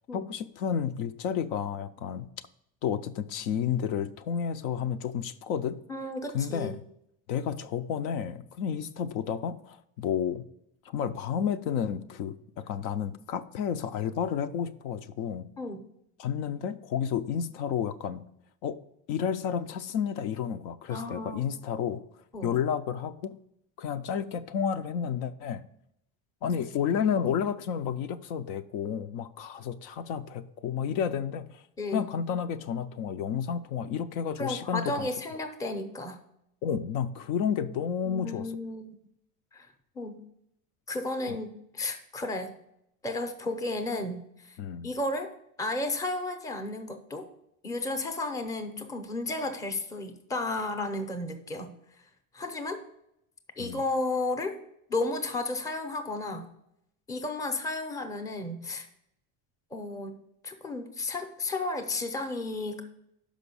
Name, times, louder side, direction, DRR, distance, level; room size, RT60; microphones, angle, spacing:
voice 1, 0.1-2.3 2.8-5.8 6.3-6.8 7.3-10.4 10.9-15.5 16.2-18.2 18.6-18.8 19.1-22.0 22.4-23.4 23.8-25.6 26.4-31.5 31.9-35.1 36.6-38.5 41.3-41.4 44.6-44.9 53.6-53.8, left 8 dB, 75° left, 11 dB, 0.7 m, -31 dB
voice 2, 5.9-6.7 15.6-15.8 20.9-21.5 22.3-22.5 31.8-32.1 34.4-36.2 38.0-38.9 39.5-39.7 40.0-40.2 40.9-42.5 43.0-44.6 44.8-45.3 45.6-47.3 47.6-51.7 52.3-52.8 53.6-54.6 54.9-56.5 57.1-58.9 59.7-62.8, left 2 dB, 10° left, 7 dB, 0.5 m, -33 dB
6.2 x 5.1 x 6.8 m, 0.77 s
cardioid pair, 155°, 42 cm